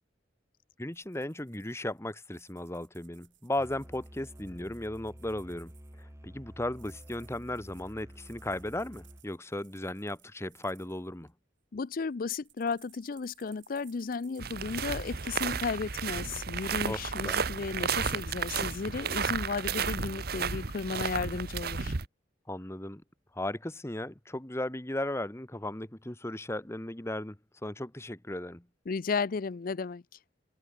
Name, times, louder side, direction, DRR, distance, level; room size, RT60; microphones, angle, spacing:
voice 1, 0.8-5.7 6.0-11.3 16.9-17.4 22.5-23.0 23.3-28.6, left 1 dB, 15° left, 1.3 m, -36 dB
sound 1, 0.9-6.0 6.7-11.3 11.8-16.7, right 15 dB, 85° right, 4.8 m, -63 dB
Musical instrument, 3.6-9.2, equal, 15° right, 7.1 m, -50 dB
voice 2, 11.7-22.0 28.9-30.0, left 4 dB, 50° left, 0.5 m, -34 dB
sound 2, 14.4-22.1, right 6 dB, 55° right, 1.0 m, -33 dB
head